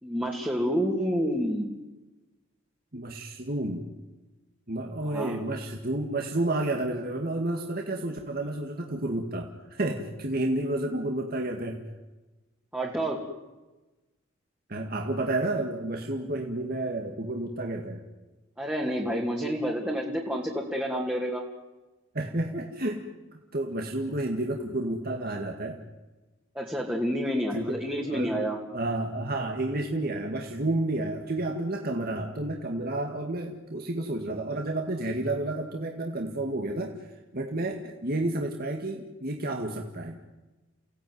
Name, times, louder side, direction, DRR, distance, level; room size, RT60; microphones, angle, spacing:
voice 1, 0.0-1.7 5.1-5.4 12.7-13.2 18.6-21.4 26.5-28.6, equal, 10° right, -2 dB, 2.5 m, -29 dB
voice 2, 2.9-3.9 4.7-11.8 14.7-18.0 22.1-23.0 23.3-25.8 27.5-27.7 28.1-28.3 28.7-40.2, right 2 dB, 50° right, 2 dB, 2.0 m, -31 dB
29.5 x 17.0 x 9.5 m, 1.1 s
head